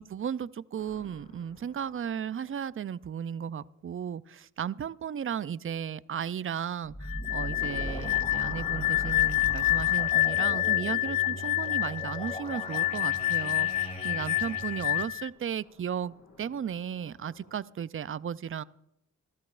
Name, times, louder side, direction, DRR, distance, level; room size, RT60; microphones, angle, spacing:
voice 1, 0.0-18.6, right 8 dB, 40° right, 18 dB, 0.5 m, -35 dB
sound 1, 0.8-3.6 7.6-13.9 15.1-17.6, left 2 dB, 65° left, 5.0 m, -52 dB
sound 2, 6.8-15.0, equal, 20° left, 2.8 m, -39 dB
sound 3, 7.1-15.3, left 17 dB, 85° left, 0.5 m, -28 dB
19.0 x 12.5 x 2.5 m, 0.81 s
cardioid pair, 50°, 33 cm